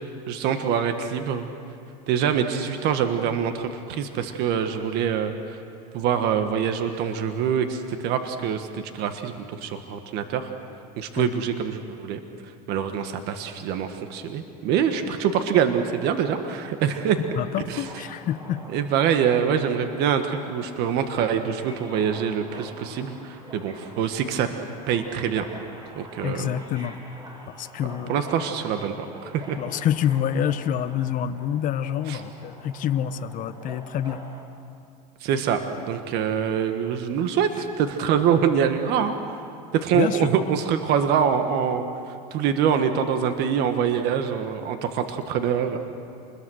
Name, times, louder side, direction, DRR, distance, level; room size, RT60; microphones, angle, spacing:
voice 1, 0.3-1.5 2.1-5.6 5.9-10.5 11.0-12.2 12.7-17.2 17.7-17.8 18.7-24.5 24.9-25.5 25.9-26.5 28.1-29.1 29.3-29.6 32.1-32.2 35.2-39.1 39.7-41.8 42.3-45.8, right 8 dB, 55° right, 7 dB, 1.6 m, -24 dB
Subway metro underground, 15.5-34.4, right 1 dB, 20° right, 3.8 m, -45 dB
voice 2, 17.4-18.6 26.2-27.0 27.6-28.3 29.6-34.2 39.9-40.3, left 10 dB, 40° left, 11 dB, 1.0 m, -27 dB
28.0 x 21.5 x 6.5 m, 2.6 s
supercardioid pair, 125°, 20 cm